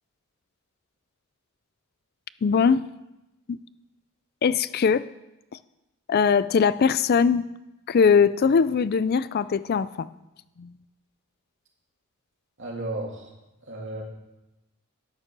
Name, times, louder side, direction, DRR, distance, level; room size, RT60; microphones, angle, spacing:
voice 1, 2.4-2.9 3.5-3.6 4.4-5.1 5.5-5.6 6.1-7.5 7.9-10.1 10.6-10.8, left 6 dB, 45° left, 16 dB, 0.4 m, -21 dB
voice 2, 12.6-13.3 13.6-14.0, right 2 dB, 60° right, -1 dB, 2.8 m, -33 dB
12.0 x 9.3 x 6.0 m, 0.98 s
head